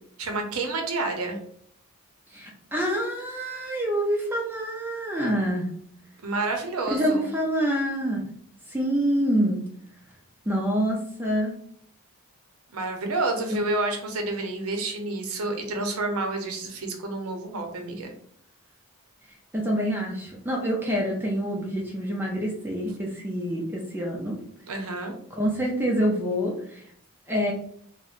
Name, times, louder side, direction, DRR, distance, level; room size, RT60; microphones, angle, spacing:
voice 1, 0.2-1.4 6.2-7.3 12.7-18.1 24.7-25.2, right 2 dB, 70° right, 3 dB, 0.7 m, -29 dB
voice 2, 2.3-5.7 6.9-8.2 8.7-9.6 10.5-11.5 13.5-13.6 19.5-24.4 25.3-26.8 27.3-27.5, equal, 10° right, -2 dB, 0.4 m, -26 dB
2.5 x 2.1 x 3.7 m, 0.63 s
head